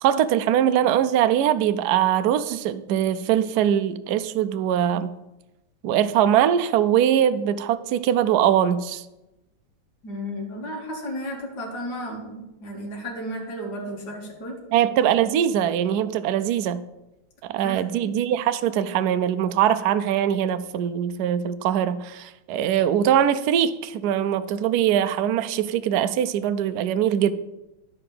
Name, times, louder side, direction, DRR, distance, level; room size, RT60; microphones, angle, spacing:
voice 1, 0.0-5.1 5.8-9.0 14.7-16.8 17.4-27.3, right 10 dB, 70° right, 11 dB, 0.9 m, -22 dB
voice 2, 10.0-14.6 17.6-18.1, equal, 55° left, -1 dB, 2.5 m, -33 dB
11.0 x 4.9 x 6.6 m, 0.96 s
omnidirectional pair, 2.2 m